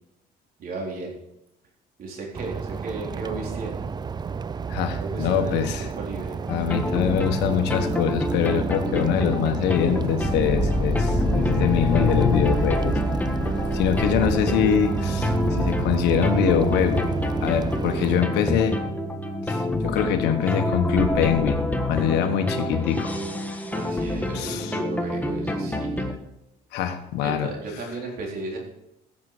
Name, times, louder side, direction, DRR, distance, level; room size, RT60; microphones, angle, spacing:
voice 1, 0.6-1.2 2.0-3.9 5.0-6.4 23.7-26.1 27.2-28.6, right 3 dB, 60° right, 0 dB, 4.0 m, -35 dB
sound 1, 2.3-18.2, right 5 dB, 25° right, 0.4 m, -30 dB
voice 2, 4.7-5.8 6.5-12.9 13.7-17.1 17.4-18.8 19.4-23.2 24.3-24.8 26.7-27.5, left 9 dB, 85° left, 7 dB, 1.5 m, -24 dB
sound 2, 6.5-26.1, left 1 dB, 10° left, 1.5 m, -27 dB
15.0 x 7.6 x 5.0 m, 0.87 s
cardioid pair, 110°, 17 cm